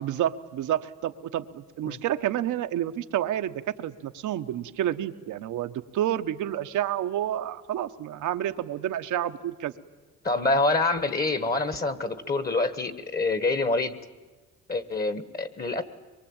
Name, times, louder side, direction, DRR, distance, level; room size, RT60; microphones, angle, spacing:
voice 1, 0.0-9.7, right 12 dB, 80° right, 9 dB, 1.1 m, -29 dB
voice 2, 10.2-14.0 14.7-15.8, left 2 dB, 30° left, 13 dB, 1.5 m, -26 dB
24.0 x 23.0 x 8.8 m, 1.2 s
cardioid pair, 90°, 30 cm